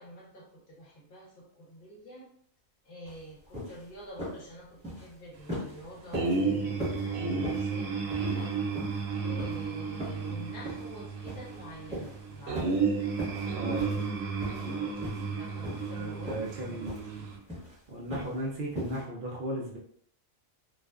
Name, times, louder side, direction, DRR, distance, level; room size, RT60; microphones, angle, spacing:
voice 1, 0.0-2.3 2.9-8.5 9.2-12.8 14.6-16.8, equal, 45° left, -3 dB, 0.8 m, -47 dB
sound 1, 3.0-3.2 3.5-3.8 4.2-4.4 4.8-5.1 5.5-5.8 6.1-6.4 6.8-7.1 7.4-7.7 8.1-8.5 8.7-9.0 9.4-9.6 10.0-10.3 10.6-10.9 11.3-11.6 11.9-12.1 12.5-12.8 13.1-13.5 13.8-14.1 14.4-14.7 15.0-15.3 15.6-15.9 16.2-16.6 16.8-17.1 17.5-17.7 18.1-18.4 18.7-19.0, equal, 5° left, 0.9 m, -38 dB
sound 2, 6.1-17.4, right 4 dB, 85° right, 1.0 m, -32 dB
voice 2, 13.5-13.8 15.9-17.2 17.9-19.8, right 1 dB, 70° right, -3 dB, 0.5 m, -36 dB
2.5 x 2.3 x 2.3 m, 0.63 s
omnidirectional pair, 1.4 m